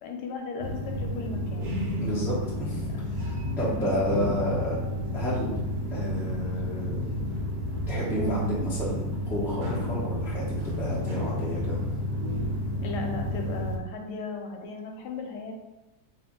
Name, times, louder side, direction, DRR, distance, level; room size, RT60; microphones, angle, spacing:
voice 1, 0.0-1.7 2.9-3.0 3.6-3.9 8.1-8.5 12.8-15.5, left 2 dB, 85° left, 2 dB, 1.2 m, -36 dB
sound 1, 0.6-13.8, left 1 dB, 75° right, 1.1 m, -31 dB
voice 2, 2.0-4.8 5.1-5.6 5.9-7.1 7.9-11.8, equal, ahead, -8 dB, 0.5 m, -31 dB
2.6 x 2.6 x 3.6 m, 1.0 s
omnidirectional pair, 1.7 m